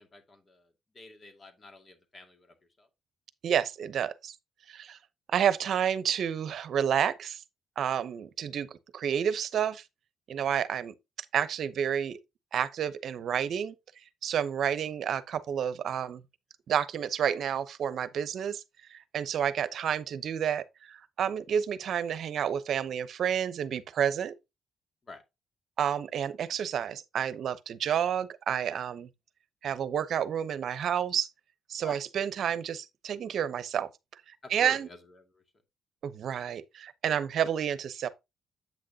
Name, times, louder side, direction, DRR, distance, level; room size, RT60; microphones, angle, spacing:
voice 1, 0.0-2.9 25.0-25.2 31.8-32.0 34.4-35.4, left 2 dB, 35° left, 2.2 m, -49 dB
voice 2, 3.4-4.3 4.7-5.0 5.3-7.4 7.8-8.7 8.9-9.8 10.3-10.9 11.3-12.2 12.5-13.7 14.2-16.2 16.7-18.6 18.9-24.3 25.8-29.1 29.6-31.3 31.7-33.9 34.5-34.9 36.0-38.1, right 8 dB, 65° right, 0.8 m, -30 dB
8.4 x 6.4 x 2.8 m
cardioid pair, 90°, 0 cm